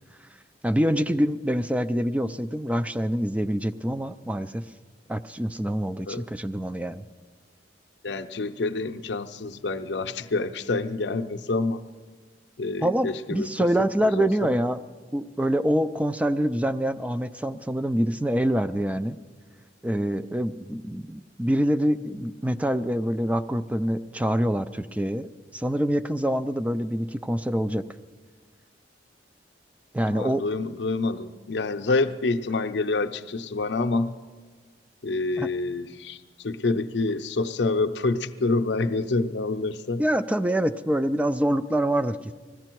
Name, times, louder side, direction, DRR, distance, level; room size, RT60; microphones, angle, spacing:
voice 1, 0.6-4.6 5.1-7.0 12.8-14.8 15.1-19.2 19.8-27.8 29.9-30.4 35.4-35.5 40.0-42.3, equal, 10° right, 0.4 m, -25 dB
voice 2, 8.0-11.8 12.6-14.3 30.1-34.2 35.0-36.2 36.4-40.0, left 3 dB, 70° left, 0.6 m, -27 dB
20.0 x 15.0 x 4.5 m
head